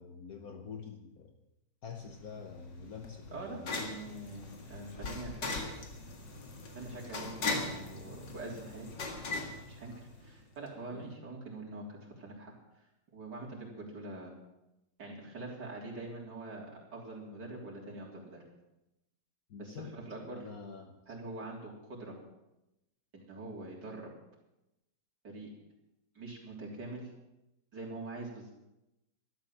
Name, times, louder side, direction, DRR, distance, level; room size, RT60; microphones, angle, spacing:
voice 1, 0.0-1.3 1.8-3.7 10.9-11.1 19.5-20.9, left 5 dB, 60° left, 5 dB, 1.5 m, -46 dB
sound 1, 2.1-10.4, left 3 dB, 80° left, 2.5 m, -40 dB
voice 2, 3.3-5.6 6.7-8.9 9.1-12.5 13.1-14.3 15.0-18.4 19.6-20.4 21.1-22.2 23.1-24.1 25.2-25.5 26.2-27.1 27.7-28.5, right 2 dB, 70° right, -3 dB, 4.2 m, -44 dB
12.5 x 12.0 x 7.4 m, 0.92 s
omnidirectional pair, 1.9 m